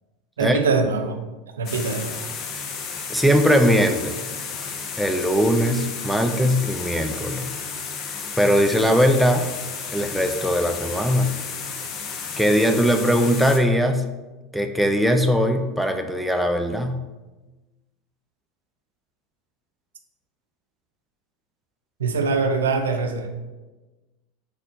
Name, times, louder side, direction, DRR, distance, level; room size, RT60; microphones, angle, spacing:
voice 1, 0.4-1.2 1.6-2.2 22.0-23.4, right 4 dB, 90° right, 6 dB, 0.5 m, -23 dB
sound 1, 1.7-13.6, left 5 dB, 45° left, 0.7 m, -33 dB
voice 2, 3.1-4.2 5.0-7.5 8.0-9.5 9.9-11.3 12.4-14.0 14.5-17.0, equal, ahead, 5 dB, 0.5 m, -20 dB
4.7 x 4.1 x 2.8 m, 1.2 s
hypercardioid pair, 90°, 0 cm